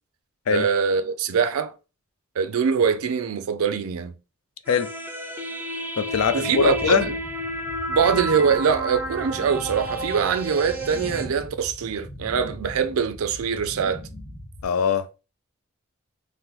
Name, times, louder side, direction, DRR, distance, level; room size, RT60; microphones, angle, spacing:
voice 1, 0.5-1.7 2.4-4.1 6.3-7.1 7.9-14.0, right 6 dB, 85° right, 0.4 m, -23 dB
sound 1, 4.7-11.3, right 1 dB, 10° right, 0.5 m, -31 dB
voice 2, 6.0-7.1 14.6-15.2, left 6 dB, 80° left, 0.4 m, -22 dB
sound 2, 6.1-14.6, left 1 dB, 20° left, 0.8 m, -40 dB
2.9 x 2.1 x 3.6 m
head